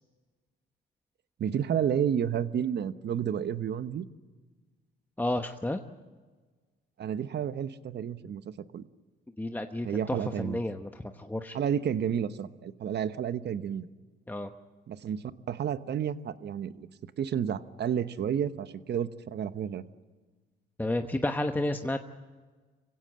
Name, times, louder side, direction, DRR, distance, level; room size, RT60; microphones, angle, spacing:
voice 1, 1.4-4.1 7.0-8.8 9.8-10.6 11.5-13.9 14.9-16.9 17.2-19.8, right 8 dB, 60° right, 12 dB, 1.1 m, -31 dB
voice 2, 5.2-5.8 9.4-11.6 14.3-14.5 20.8-22.0, left 1 dB, 10° left, 6 dB, 1.1 m, -31 dB
26.0 x 16.5 x 7.6 m, 1.4 s
cardioid pair, 90°, 20 cm